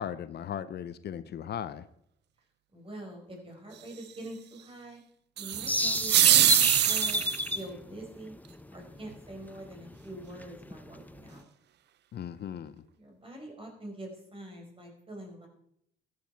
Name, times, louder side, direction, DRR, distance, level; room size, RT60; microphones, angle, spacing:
voice 1, 0.0-1.8 12.1-12.8, left 9 dB, 55° left, 14 dB, 0.7 m, -37 dB
voice 2, 2.7-5.0 5.4-7.2 7.5-8.3 8.7-11.5 12.9-15.5, right 1 dB, 25° right, 2 dB, 4.9 m, -45 dB
sound 1, 5.4-7.6, right 12 dB, 60° right, 0.6 m, -23 dB
sound 2, 5.5-11.4, left 1 dB, 10° left, 0.7 m, -33 dB
14.5 x 9.5 x 4.6 m, 0.71 s
cardioid pair, 80°, 20 cm